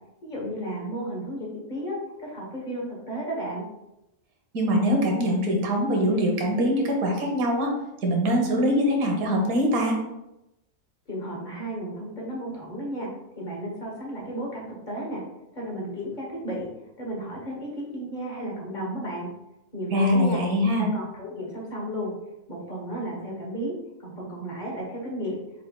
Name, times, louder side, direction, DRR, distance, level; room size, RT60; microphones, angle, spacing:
voice 1, 0.2-3.6 11.1-15.2 15.5-16.7 17.0-19.3 19.7-20.4 20.8-22.1 22.5-23.7 24.0-25.4, right 1 dB, 35° left, -2 dB, 1.1 m, -33 dB
voice 2, 4.5-7.7 8.0-10.0 19.9-20.9, equal, 90° right, 1 dB, 1.4 m, -23 dB
4.4 x 3.7 x 2.2 m, 0.91 s
omnidirectional pair, 1.5 m